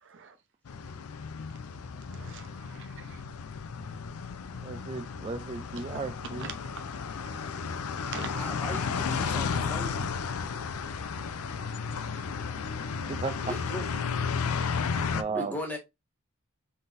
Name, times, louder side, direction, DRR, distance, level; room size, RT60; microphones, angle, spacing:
voice 1, 0.0-0.4 1.8-3.2 6.4-6.8 7.3-7.5 8.0-8.3, right 6 dB, 55° right, 0.7 m, -44 dB
sound 1, 0.6-15.2, left 5 dB, 80° left, 0.5 m, -33 dB
voice 2, 4.6-6.5 13.1-13.6 15.1-15.8, right 4 dB, 25° right, 0.3 m, -35 dB
voice 3, 8.3-10.0 12.1-12.3 13.4-13.8 15.3-15.8, left 1 dB, 10° left, 1.5 m, -38 dB
3.9 x 3.9 x 2.5 m
head